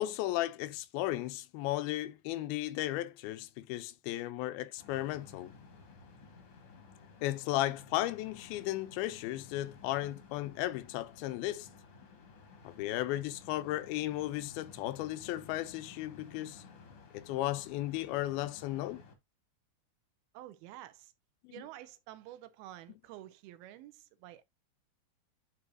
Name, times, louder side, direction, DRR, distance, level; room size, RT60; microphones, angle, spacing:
voice 1, 0.0-5.5 7.2-11.7 12.6-16.6 17.1-19.0 21.4-21.6, left 15 dB, 85° left, 2.4 m, -35 dB
sound 1, 4.8-19.1, left 4 dB, 50° left, 2.0 m, -55 dB
voice 2, 20.3-21.1 21.5-24.4, right 14 dB, 85° right, 2.7 m, -49 dB
9.6 x 5.4 x 2.4 m
omnidirectional pair, 4.4 m